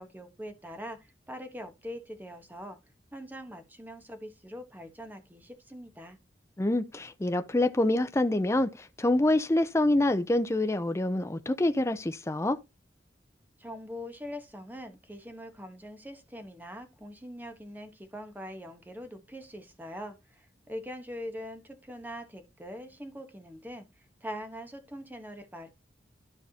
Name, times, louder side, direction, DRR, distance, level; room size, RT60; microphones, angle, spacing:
voice 1, 0.0-2.8 3.1-6.2 13.6-25.7, equal, 10° right, 1.2 m, -43 dB
voice 2, 6.6-12.6, left 1 dB, 15° left, 0.5 m, -26 dB
13.0 x 4.7 x 2.8 m
head